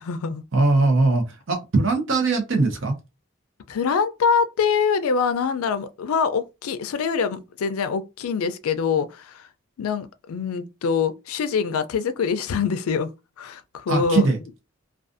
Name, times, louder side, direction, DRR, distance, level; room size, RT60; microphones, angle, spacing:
voice 1, 0.0-0.4 3.7-9.4 9.8-13.1 13.4-14.3, left 6 dB, 85° left, 0.4 m, -24 dB
voice 2, 0.5-2.9 13.9-14.4, right 3 dB, 60° right, 0.7 m, -20 dB
2.4 x 2.3 x 2.5 m
head